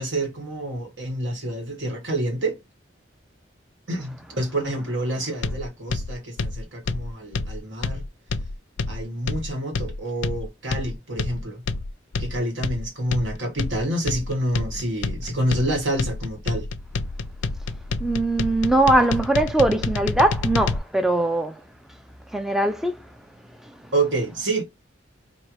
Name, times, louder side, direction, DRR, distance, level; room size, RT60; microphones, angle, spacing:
voice 1, 0.0-2.6 3.9-8.0 8.9-11.6 12.2-16.7 23.9-24.6, right 1 dB, 80° right, 1.8 m, -27 dB
sound 1, 5.4-20.8, left 3 dB, 90° left, 0.5 m, -28 dB
voice 2, 18.0-21.6 22.3-23.1 23.6-23.8, right 1 dB, ahead, 0.3 m, -21 dB
4.4 x 2.6 x 3.1 m
head